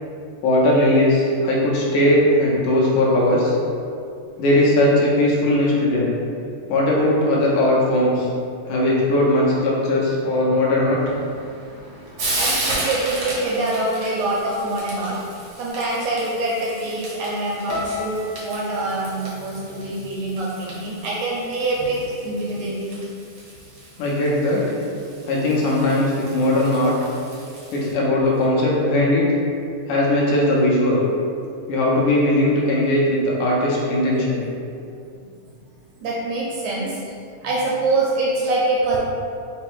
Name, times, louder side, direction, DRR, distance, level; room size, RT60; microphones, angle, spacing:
voice 1, 0.4-3.6 4.4-6.1 6.7-8.3 8.7-11.0 24.0-24.6 25.3-26.9 27.7-29.3 29.9-31.0 31.7-34.4, left 1 dB, 80° left, -4 dB, 2.3 m, -19 dB
Frying (food), 11.0-27.9, right 1 dB, 65° right, 1.0 m, -34 dB
voice 2, 12.4-15.2 15.6-23.0 34.2-34.3 36.0-37.0 37.4-39.0, right 2 dB, 80° right, -5 dB, 1.7 m, -25 dB
sound 1, 17.7-21.9 22.1-22.9 23.5-23.7, left 2 dB, 60° left, 1.0 m, -37 dB
5.4 x 2.1 x 4.5 m, 2.4 s
omnidirectional pair, 3.7 m